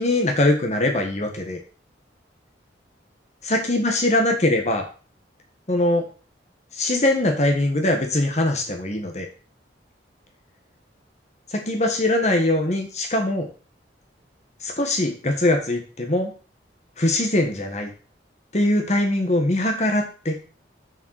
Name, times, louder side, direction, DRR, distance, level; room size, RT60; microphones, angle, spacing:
voice 1, 0.0-1.6 3.4-4.8 5.7-6.1 6.7-9.3 11.5-13.5 14.6-16.3 17.0-17.9 18.5-20.4, left 1 dB, 40° left, 3 dB, 1.6 m, -22 dB
7.0 x 6.9 x 6.6 m, 0.37 s
head